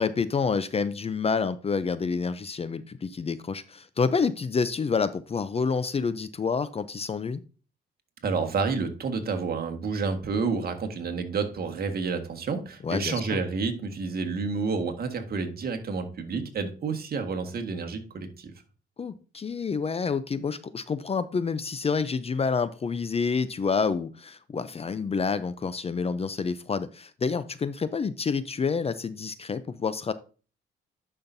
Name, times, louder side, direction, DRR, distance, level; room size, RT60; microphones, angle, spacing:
voice 1, 0.0-7.4 12.8-13.4 19.0-30.1, left 5 dB, 30° left, 14 dB, 0.5 m, -28 dB
voice 2, 8.2-18.5, right 4 dB, 50° right, 6 dB, 1.7 m, -29 dB
10.5 x 5.7 x 2.7 m, 0.36 s
cardioid pair, 90°, 20 cm